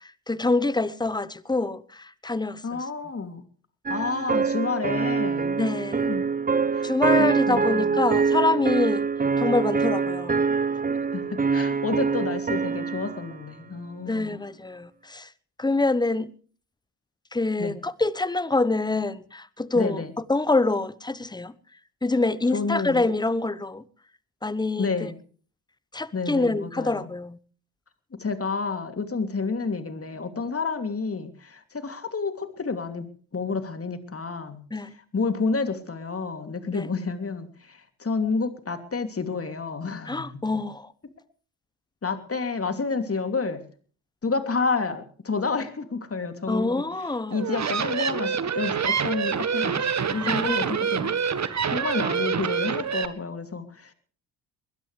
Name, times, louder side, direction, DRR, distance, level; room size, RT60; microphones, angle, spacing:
voice 1, 0.3-2.8 5.6-6.1 6.8-9.1 9.4-10.4 14.1-15.3 15.6-16.3 17.3-20.0 20.3-21.5 22.0-23.8 24.4-25.1 25.9-27.4 34.7-34.9 36.7-36.9 40.1-40.9 46.5-47.5 50.2-50.9, left 2 dB, 10° left, 1.1 m, -26 dB
voice 2, 2.6-3.4 3.9-6.3 6.7-6.9 7.2-8.0 11.1-14.4 17.6-17.8 19.7-20.1 22.5-23.0 24.8-25.2 26.1-27.1 28.2-33.1 33.3-34.6 35.1-40.6 42.0-43.6 44.2-46.8 47.3-53.9, left 4 dB, 30° left, 2.9 m, -30 dB
sound 1, 3.9-13.3, right 5 dB, 15° right, 0.9 m, -25 dB
sound 2, 47.3-53.1, right 7 dB, 35° right, 1.6 m, -26 dB
21.0 x 20.0 x 3.4 m
figure-of-eight pair, 45°, 49 cm